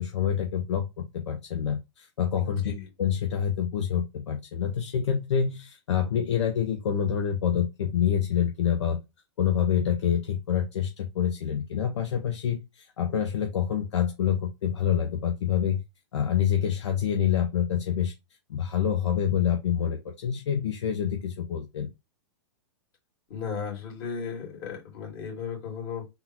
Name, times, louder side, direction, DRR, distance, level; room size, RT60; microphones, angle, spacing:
voice 1, 0.0-2.7 3.0-9.0 9.4-15.8 16.1-18.1 18.5-21.9, left 8 dB, 75° left, 0.6 m, -27 dB
voice 2, 2.4-2.9 23.3-26.1, left 6 dB, 45° left, 2.1 m, -35 dB
3.6 x 2.2 x 2.9 m
hypercardioid pair, 115°, 15 cm